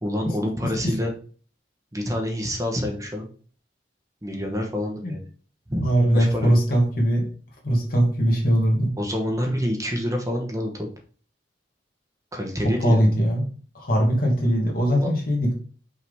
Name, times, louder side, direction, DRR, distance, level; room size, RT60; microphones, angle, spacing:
voice 1, 0.0-1.1 1.9-3.3 4.2-5.3 5.7-5.9 6.1-6.5 8.3-8.4 9.0-10.9 12.3-13.1 15.0-15.1, equal, 20° right, 1 dB, 1.1 m, -27 dB
voice 2, 5.8-7.3 7.6-8.9 12.6-13.5 13.7-15.5, equal, 55° left, 0 dB, 1.9 m, -21 dB
5.7 x 4.7 x 3.6 m, 0.42 s
head